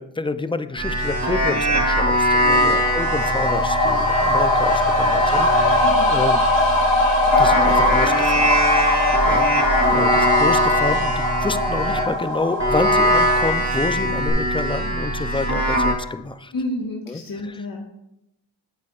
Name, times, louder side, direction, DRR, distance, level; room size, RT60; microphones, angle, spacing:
voice 1, 0.0-6.4 7.4-8.5 8.8-8.9 9.2-11.1 11.4-16.5 17.1-17.6, left 3 dB, 10° left, 11 dB, 0.5 m, -29 dB
sound 1, 0.8-12.1 12.6-15.9, equal, 35° right, 3.3 m, -22 dB
sound 2, 2.5-13.9 14.3-14.4, left 1 dB, 65° left, 2.5 m, -20 dB
voice 2, 5.8-6.1 16.5-17.9, left 1 dB, 45° left, -1 dB, 1.6 m, -30 dB
12.5 x 8.3 x 2.5 m, 0.86 s
cardioid pair, 55°, 47 cm